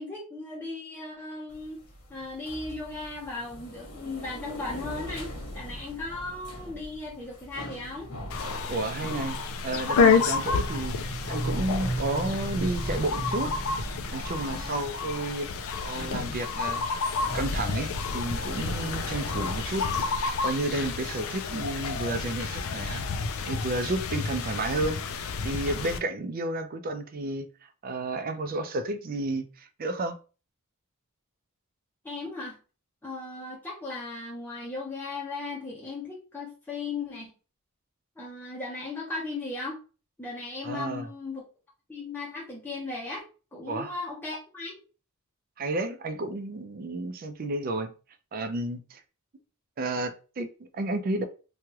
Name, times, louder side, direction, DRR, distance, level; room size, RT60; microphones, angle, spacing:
voice 1, 0.0-1.8 2.1-8.1 14.5-14.8 32.0-32.6 33.0-37.3 38.2-39.8 40.2-41.4 41.9-43.2 43.5-44.8, left 3 dB, 10° left, 0.6 m, -37 dB
sound 1, 1.5-20.2, equal, 85° left, 1.1 m, -38 dB
sound 2, 8.3-26.0, left 5 dB, 65° left, 0.4 m, -30 dB
voice 2, 8.7-13.5 14.1-15.5 15.8-17.0 17.3-19.9 20.4-23.0 23.5-25.0 25.4-27.5 27.8-30.2 40.6-41.1 43.7-43.9 45.6-47.9 48.3-49.0 49.8-51.2, right 2 dB, 40° right, 0.4 m, -31 dB
3.1 x 2.3 x 2.9 m
head